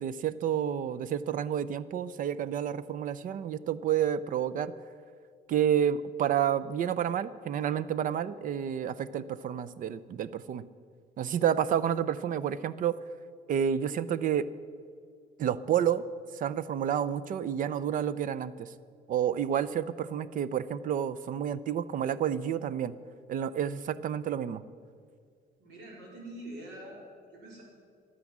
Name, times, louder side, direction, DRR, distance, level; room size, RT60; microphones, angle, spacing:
voice 1, 0.0-4.7 5.5-10.6 11.2-13.0 13.5-14.5 15.4-16.1 16.3-18.7 19.1-22.9 23.3-24.6, right 9 dB, 55° right, 17 dB, 0.5 m, -30 dB
voice 2, 25.6-27.6, right 1 dB, 80° right, -2 dB, 4.2 m, -45 dB
12.0 x 9.7 x 7.3 m, 2.1 s
cardioid pair, 110°, 17 cm